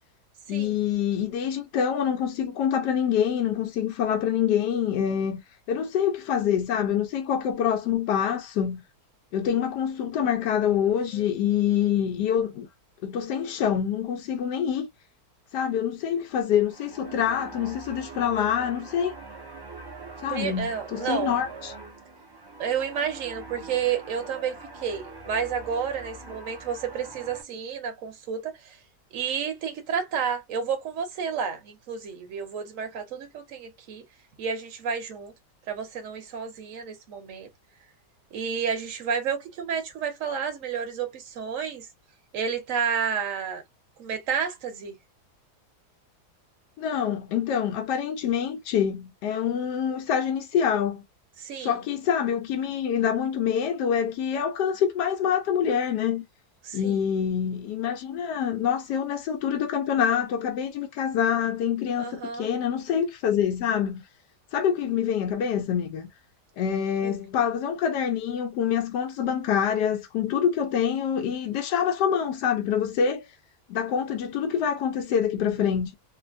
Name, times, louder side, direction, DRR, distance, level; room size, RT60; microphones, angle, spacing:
voice 1, 0.5-5.4 5.7-8.8 9.3-12.7 13.0-14.9 15.5-19.1 20.2-21.7 46.8-51.0 51.5-56.2 56.7-64.0 64.5-66.1 66.6-73.3 73.7-75.9, left 8 dB, 90° left, 1.2 m, -26 dB
sound 1, 16.3-27.4, right 3 dB, 25° right, 0.5 m, -43 dB
voice 2, 20.3-21.3 22.6-28.8 29.1-34.0 34.4-35.3 35.7-37.5 38.3-41.9 42.3-43.6 44.0-45.0 51.4-51.7 56.6-57.1 62.0-62.5 67.0-67.1, right 7 dB, 55° right, 1.2 m, -31 dB
3.1 x 2.1 x 2.4 m
omnidirectional pair, 1.7 m